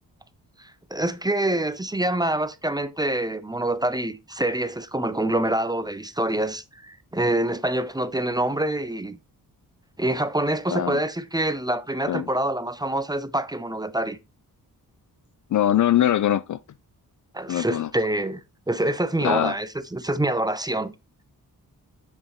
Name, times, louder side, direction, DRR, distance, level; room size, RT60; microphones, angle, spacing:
voice 1, 0.6-9.2 10.0-14.2 17.3-18.4 18.7-20.9, right 1 dB, 10° right, 0.6 m, -26 dB
voice 2, 15.5-16.6 17.5-17.9 19.2-19.5, left 11 dB, 55° left, 0.4 m, -22 dB
7.8 x 7.0 x 3.0 m
wide cardioid pair, 120°, 36 cm